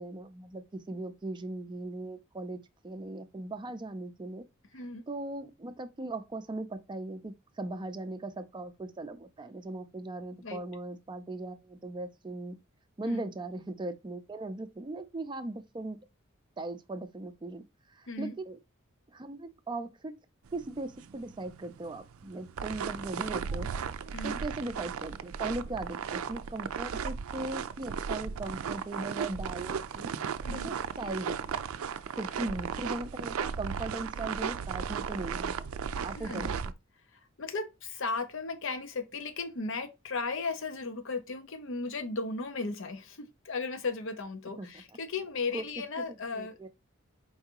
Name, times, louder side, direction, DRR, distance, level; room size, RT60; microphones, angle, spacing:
voice 1, 0.0-4.5 4.7-12.6 13.0-16.0 16.6-18.6 19.1-20.1 20.5-30.1 30.5-31.6 32.2-35.6 36.0-36.7 44.6-44.8 45.5-45.6 46.0-46.7, right 2 dB, 20° right, 0.5 m, -39 dB
sound 1, 20.5-36.7, right 6 dB, 80° right, 0.4 m, -36 dB
voice 2, 30.4-30.7 36.1-36.5 37.4-46.7, left 3 dB, 65° left, 0.7 m, -36 dB
4.7 x 3.4 x 2.9 m
head